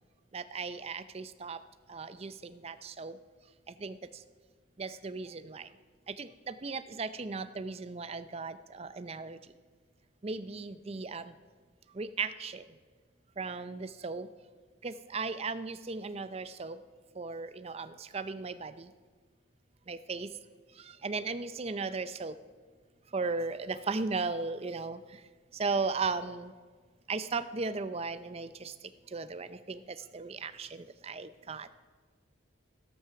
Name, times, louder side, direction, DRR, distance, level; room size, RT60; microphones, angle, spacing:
voice 1, 0.3-1.6 1.9-3.2 3.8-4.2 4.8-5.7 6.1-9.4 10.2-11.3 11.9-12.7 13.4-14.3 14.8-16.8 17.2-18.9 19.9-20.3 20.8-22.4 23.1-25.2 25.5-26.5 27.1-28.7 29.1-31.7, right 4 dB, 30° right, 13 dB, 0.5 m, -36 dB
13.0 x 13.0 x 5.8 m, 1.5 s
head